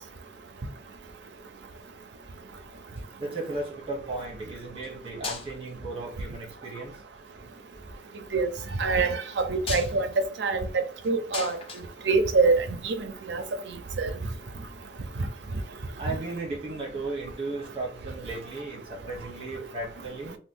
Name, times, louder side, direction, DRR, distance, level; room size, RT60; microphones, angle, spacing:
sound 1, 3.0-3.6 4.7-4.9 5.2-5.8 6.8-7.3 9.3-12.8 14.1-14.2, left 4 dB, 30° left, 0.5 m, -39 dB
voice 1, 3.2-6.9 16.0-20.4, right 2 dB, 30° right, 1.0 m, -35 dB
voice 2, 8.8-10.1 10.4-11.6 12.1-13.0 13.3-13.4 14.0-14.1, right 4 dB, 85° right, 0.5 m, -24 dB
2.9 x 2.2 x 3.6 m
head